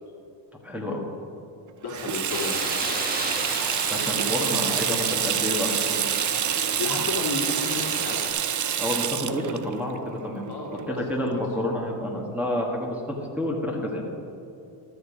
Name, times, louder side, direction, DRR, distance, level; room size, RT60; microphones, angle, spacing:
voice 1, 0.6-1.1 3.7-6.0 8.8-10.4 10.9-14.0, left 1 dB, 5° right, -3 dB, 1.7 m, -29 dB
voice 2, 1.8-2.8 6.8-8.2 10.5-11.4, left 3 dB, 50° left, -1 dB, 2.0 m, -32 dB
Water tap faucet / Sink (filling or washing), 1.9-11.2, right 9 dB, 40° right, 0.5 m, -27 dB
sound 1, 2.3-8.3, right 1 dB, 20° right, 1.7 m, -34 dB
13.0 x 6.7 x 5.0 m, 2.7 s
cardioid pair, 85°, 48 cm